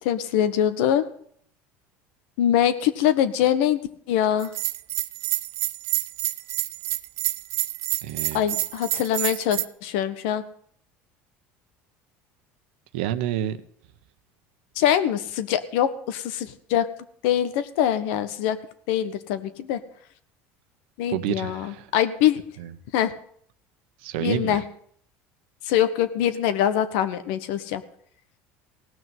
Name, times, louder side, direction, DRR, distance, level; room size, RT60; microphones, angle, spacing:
voice 1, 0.0-1.0 2.4-3.8 4.1-4.5 8.3-10.4 14.8-16.9 17.2-18.6 18.9-19.8 21.0-22.4 22.9-23.1 24.2-24.6 25.7-27.8, left 10 dB, 80° left, 12 dB, 1.3 m, -23 dB
Bell, 4.4-9.6, right 16 dB, 60° right, 0.6 m, -28 dB
voice 2, 8.0-8.5 12.9-13.6 21.1-21.9 22.6-22.7 24.0-24.6, right 12 dB, 85° right, 12 dB, 1.1 m, -29 dB
17.5 x 6.2 x 9.2 m, 0.63 s
supercardioid pair, 115°, 6 cm